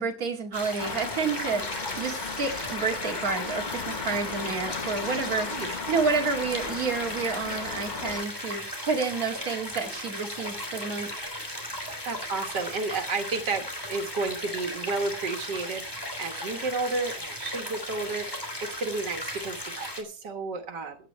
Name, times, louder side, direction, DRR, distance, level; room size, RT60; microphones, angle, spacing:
voice 1, 0.0-5.5 5.9-11.1, right 4 dB, 55° right, 2 dB, 2.6 m, -30 dB
sound 1, 0.5-20.0, left 1 dB, 15° left, 3.2 m, -36 dB
sound 2, 0.8-8.3, left 5 dB, 35° left, 0.8 m, -36 dB
voice 2, 12.0-15.9 16.2-21.0, right 3 dB, 90° right, 5 dB, 2.1 m, -32 dB
16.0 x 9.4 x 4.4 m, 0.37 s
omnidirectional pair, 1.8 m